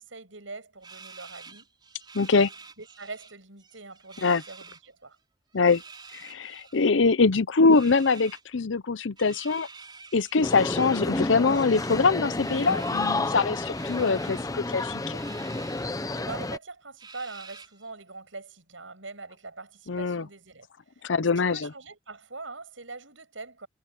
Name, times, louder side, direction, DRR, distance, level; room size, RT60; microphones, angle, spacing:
voice 1, 0.0-1.7 2.8-5.2 16.1-20.7 21.0-23.7, right 3 dB, 85° right, 7.5 m, -43 dB
sound 1, 0.8-3.3 3.6-4.8 5.5-6.9 7.7-8.4 9.2-11.0 11.5-13.2 13.7-14.4 15.2-15.9 16.3-16.4 17.0-17.9, right 5 dB, 25° right, 5.0 m, -48 dB
voice 2, 2.1-2.5 4.2-4.4 5.5-5.8 6.1-9.7 10.1-15.2 19.9-20.2 21.0-21.7, left 4 dB, 80° left, 0.7 m, -23 dB
sound 2, 10.4-16.6, left 2 dB, 20° left, 0.8 m, -30 dB
head